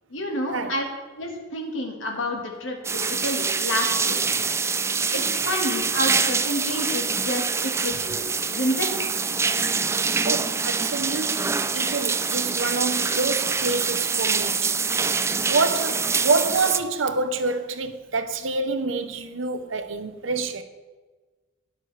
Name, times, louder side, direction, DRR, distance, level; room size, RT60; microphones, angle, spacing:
voice 1, 0.1-0.9 1.2-4.2 5.1-8.2 8.5-8.9, equal, 80° left, 1.8 m, -29 dB
sound 1, 2.8-16.8, right 5 dB, 15° right, 0.3 m, -25 dB
voice 2, 10.2-11.5 11.7-14.8 15.5-20.6, right 3 dB, 85° right, 0.9 m, -27 dB
17.5 x 6.4 x 3.3 m
head